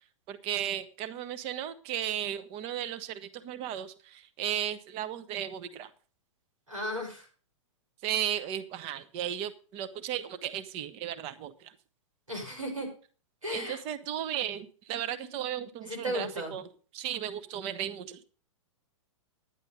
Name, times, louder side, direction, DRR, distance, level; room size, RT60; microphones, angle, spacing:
voice 1, 0.3-5.9 8.0-11.7 13.5-18.2, right 10 dB, 35° right, 11 dB, 1.2 m, -35 dB
voice 2, 6.7-7.3 12.3-12.9 13.4-13.8 15.8-16.5, equal, 90° right, 4 dB, 5.4 m, -35 dB
11.0 x 10.0 x 5.0 m, 0.38 s
hypercardioid pair, 110°, 17 cm